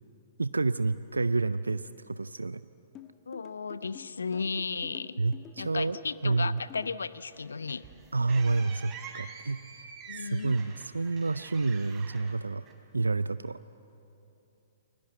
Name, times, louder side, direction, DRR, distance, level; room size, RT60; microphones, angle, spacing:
voice 1, 0.4-2.6 5.2-6.0 6.2-6.6 8.1-12.6 12.9-13.6, right 3 dB, 85° right, 14 dB, 0.5 m, -29 dB
sound 1, 2.9-6.9, left 10 dB, 25° left, 1.4 m, -49 dB
voice 2, 3.3-5.2 5.6-7.9 10.1-10.5, left 5 dB, 80° left, 15 dB, 0.8 m, -34 dB
sound 2, 7.3-13.1, right 6 dB, 25° right, 3.8 m, -47 dB
29.5 x 21.5 x 8.0 m, 2.9 s
figure-of-eight pair, 115°, 0 cm